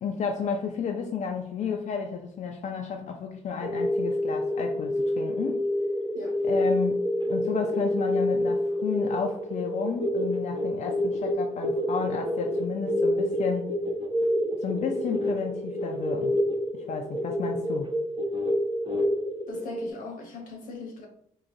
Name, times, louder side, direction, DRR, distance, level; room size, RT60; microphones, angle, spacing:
voice 1, 0.0-5.7 6.4-13.7 14.6-16.4 16.7-17.9, left 6 dB, 60° left, 0.4 m, -32 dB
sound 1, 3.6-19.9, left 1 dB, 35° right, 0.7 m, -28 dB
voice 2, 19.5-21.1, left 3 dB, 85° left, 0.9 m, -40 dB
3.8 x 2.9 x 2.6 m
supercardioid pair, 60°, 14 cm